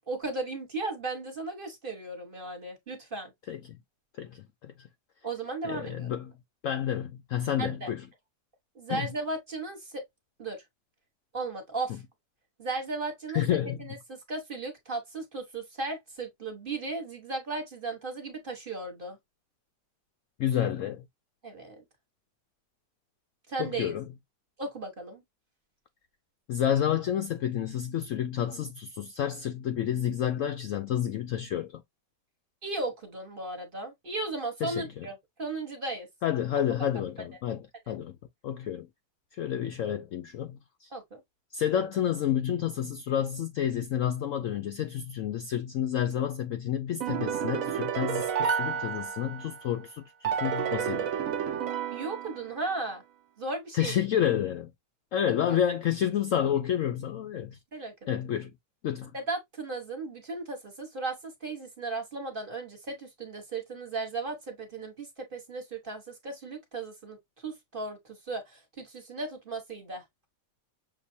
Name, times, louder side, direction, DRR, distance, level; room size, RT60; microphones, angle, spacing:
voice 1, 0.1-3.3 5.2-6.1 7.6-7.9 8.7-10.0 10.4-10.6 11.3-12.0 12.6-13.4 13.8-19.2 21.4-21.8 23.5-23.9 24.6-25.2 32.6-36.1 40.9-41.2 51.9-53.0 53.4-54.0 57.7-58.2 59.1-67.2 67.4-70.0, right 3 dB, 35° right, 1.2 m, -36 dB
voice 2, 4.2-4.7 5.6-6.3 6.6-8.0 8.9-9.1 13.3-13.8 20.4-21.0 23.6-24.0 26.5-31.8 34.6-35.1 36.2-38.1 38.4-38.9 39.3-40.9 41.5-51.1 53.7-54.7 55.1-57.6 58.1-58.5 58.8-59.1, left 10 dB, 70° left, 0.8 m, -30 dB
sound 1, 47.0-49.6 50.2-52.7, right 7 dB, 60° right, 1.0 m, -31 dB
6.6 x 2.7 x 2.6 m
omnidirectional pair, 1.8 m